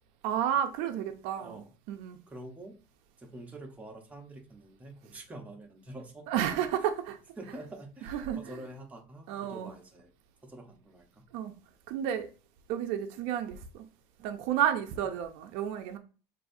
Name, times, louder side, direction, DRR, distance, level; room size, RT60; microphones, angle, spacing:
voice 1, 0.2-1.6 1.9-2.2 6.3-7.2 8.1-8.4 9.3-9.7 11.3-11.5 11.9-12.3 12.7-13.9 14.2-16.0, right 10 dB, 85° right, 0.5 m, -31 dB
voice 2, 1.3-1.7 2.3-2.7 3.2-6.3 7.4-10.1 10.4-11.2 14.7-14.9, right 1 dB, 15° right, 1.0 m, -46 dB
6.2 x 2.7 x 2.6 m
cardioid pair, 130°, 10 cm